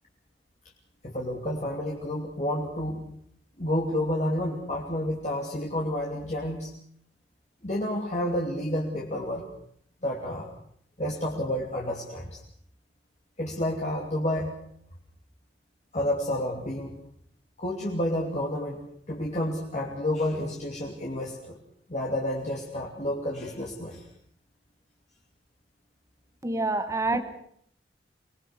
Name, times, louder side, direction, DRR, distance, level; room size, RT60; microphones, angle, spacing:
voice 1, 1.0-3.0 3.6-6.7 7.6-9.5 10.0-10.5 11.0-12.4 13.4-14.6 15.9-17.0 17.6-21.6 21.9-24.1 27.1-27.2, left 1 dB, 40° left, -2 dB, 2.9 m, -30 dB
voice 2, 26.4-27.2, right 2 dB, 15° right, 10 dB, 1.1 m, -26 dB
25.5 x 20.5 x 6.2 m, 0.66 s
head